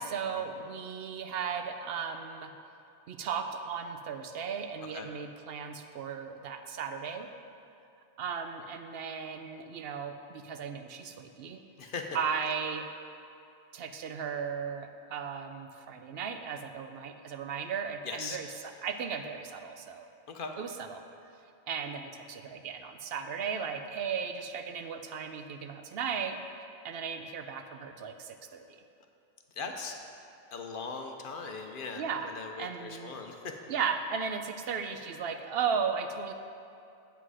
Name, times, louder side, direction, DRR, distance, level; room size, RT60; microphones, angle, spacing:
voice 1, 0.0-2.5 3.1-7.3 8.2-11.6 11.9-12.9 13.7-20.1 20.6-21.0 21.7-26.4 26.8-28.8 32.0-33.2 33.7-36.3, right 6 dB, 70° right, 7 dB, 0.8 m, -36 dB
voice 2, 11.8-12.2 18.0-18.4 20.3-20.5 29.6-29.9 30.5-33.4, left 4 dB, 60° left, 3 dB, 0.9 m, -39 dB
8.1 x 7.7 x 4.8 m, 2.5 s
omnidirectional pair, 1.1 m